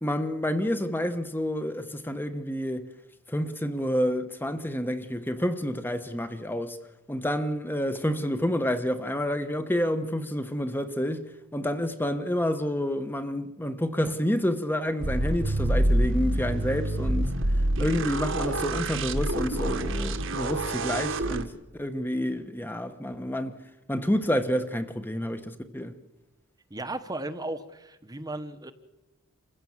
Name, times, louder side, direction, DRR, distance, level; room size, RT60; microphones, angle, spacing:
voice 1, 0.0-2.8 3.3-6.8 7.1-11.2 11.5-17.3 17.8-23.6 23.9-26.0, equal, 10° left, 1.1 m, -29 dB
sound 1, 15.0-21.4, right 1 dB, 65° right, 1.6 m, -27 dB
voice 2, 26.7-28.7, right 2 dB, 20° right, 1.1 m, -35 dB
28.0 x 15.5 x 7.3 m
head